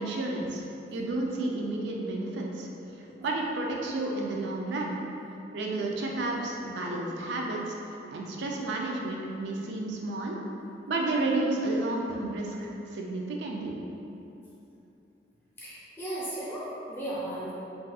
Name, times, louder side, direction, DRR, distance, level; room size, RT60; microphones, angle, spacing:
voice 1, 0.0-2.7 3.2-5.0 5.5-10.4 10.9-13.7, right 2 dB, 75° right, -1 dB, 0.4 m, -31 dB
voice 2, 15.6-17.5, right 1 dB, 15° left, -8 dB, 0.6 m, -36 dB
4.0 x 2.4 x 2.3 m, 2.8 s
head